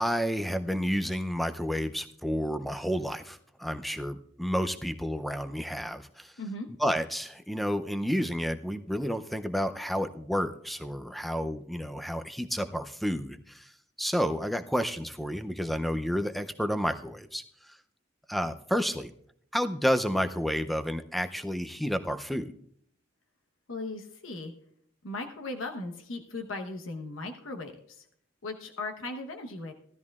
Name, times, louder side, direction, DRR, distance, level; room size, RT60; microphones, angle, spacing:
voice 1, 0.0-6.3 6.8-13.7 14.0-17.4 18.3-19.1 19.5-22.5, equal, ahead, 9 dB, 0.5 m, -30 dB
voice 2, 6.4-6.7 23.7-24.5 25.0-28.1 28.4-29.7, left 2 dB, 90° left, 4 dB, 1.1 m, -37 dB
15.0 x 12.5 x 2.4 m, 0.66 s
head